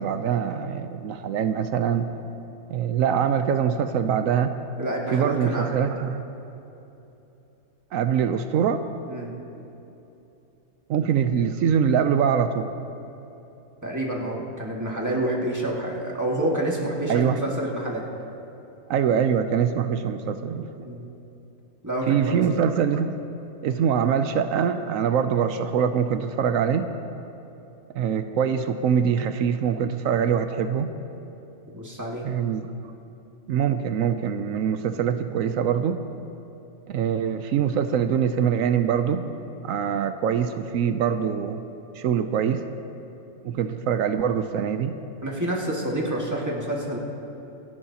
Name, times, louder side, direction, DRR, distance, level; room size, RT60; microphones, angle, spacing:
voice 1, 0.0-2.1 2.7-4.6 5.1-6.2 7.9-8.8 10.9-12.7 17.1-17.4 18.9-20.9 22.1-23.2 23.6-26.9 27.9-30.9 32.2-32.7 33.5-36.0 36.9-39.2 39.6-41.6 42.0-42.6 43.4-44.9, right 8 dB, 85° right, 9 dB, 1.0 m, -23 dB
voice 2, 4.8-5.8 9.1-9.3 13.8-18.0 20.8-21.0 21.8-22.4 31.7-32.3 45.2-47.0, right 1 dB, 15° right, -3 dB, 1.8 m, -28 dB
27.0 x 11.0 x 2.9 m, 2.9 s
omnidirectional pair, 1.4 m